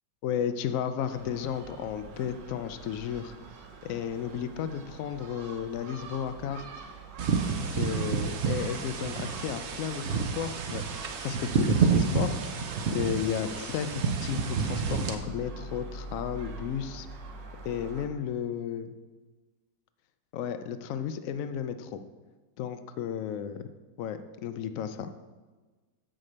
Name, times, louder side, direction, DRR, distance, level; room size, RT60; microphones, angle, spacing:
voice 1, 0.2-3.3 3.8-6.7 7.6-10.8 11.2-12.4 12.9-17.1 17.6-19.0 20.3-22.0 22.6-23.7 24.0-25.1, left 8 dB, 80° left, 10 dB, 0.7 m, -33 dB
Gull seagull, 1.1-18.1, right 3 dB, 75° right, 1.7 m, -46 dB
sound 1, 7.2-15.1, right 5 dB, 60° right, 0.7 m, -29 dB
7.9 x 5.0 x 6.6 m, 1.3 s
omnidirectional pair, 2.0 m